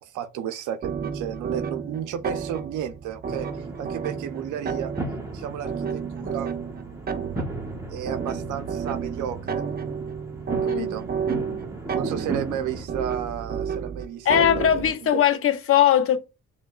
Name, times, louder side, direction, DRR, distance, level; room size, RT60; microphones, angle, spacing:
voice 1, 0.0-4.9 5.3-6.5 7.9-9.6 10.6-11.1 11.9-15.2, right 9 dB, 85° right, 0.5 m, -33 dB
sound 1, 0.8-15.0, right 7 dB, 30° right, 0.4 m, -31 dB
sound 2, 3.2-12.9, right 1 dB, 10° right, 0.9 m, -36 dB
voice 2, 14.3-16.2, left 10 dB, 50° left, 0.6 m, -20 dB
6.6 x 2.2 x 2.3 m
cardioid pair, 90°, 30 cm